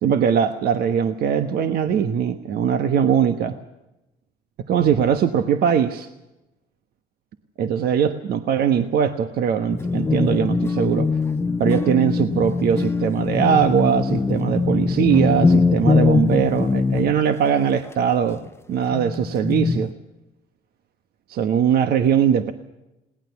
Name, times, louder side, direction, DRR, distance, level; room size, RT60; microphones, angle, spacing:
voice 1, 0.0-3.5 4.7-6.1 7.6-11.1 11.6-18.4 18.7-19.9 21.3-22.5, right 8 dB, 65° right, 9 dB, 1.2 m, -20 dB
sound 1, 9.7-17.3 18.3-18.5 18.9-19.9, left 4 dB, 15° left, 0.7 m, -22 dB
21.0 x 19.0 x 7.1 m, 0.95 s
cardioid pair, 110°, 17 cm